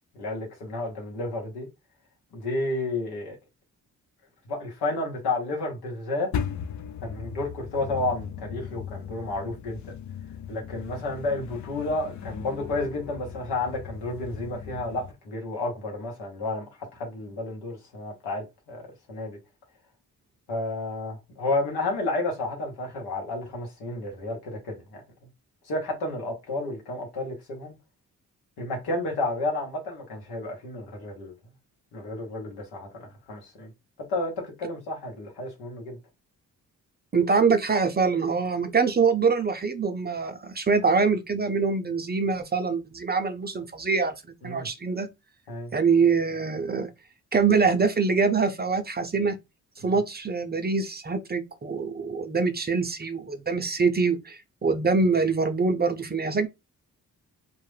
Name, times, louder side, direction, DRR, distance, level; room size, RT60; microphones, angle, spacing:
voice 1, 0.1-1.7 2.3-3.4 4.5-6.3 7.0-9.9 10.5-18.8 19.1-19.4 20.5-25.0 25.6-27.7 28.6-31.3 31.9-33.7 34.1-36.0 44.4-44.7 45.5-45.7, left 2 dB, 85° left, 0.9 m, -31 dB
sound 1, 6.3-15.1, left 8 dB, 50° left, 0.5 m, -37 dB
voice 2, 37.1-44.1 44.4-45.1 45.7-46.9 47.3-49.4 49.8-56.5, right 4 dB, 25° right, 0.5 m, -24 dB
2.2 x 2.0 x 3.2 m
supercardioid pair, 40°, 38 cm